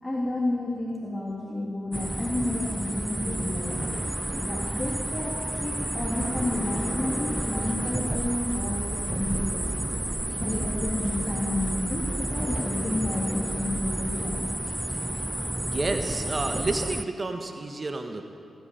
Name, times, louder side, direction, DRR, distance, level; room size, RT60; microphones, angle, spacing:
voice 1, 0.0-3.8 4.3-9.7 10.4-14.5, left 1 dB, 25° left, -4 dB, 3.3 m, -31 dB
sound 1, 1.9-17.0, right 1 dB, 15° right, 0.4 m, -30 dB
voice 2, 15.6-18.2, right 2 dB, 40° right, 5 dB, 1.4 m, -30 dB
17.0 x 9.5 x 8.8 m, 2.5 s
supercardioid pair, 40°, 0 cm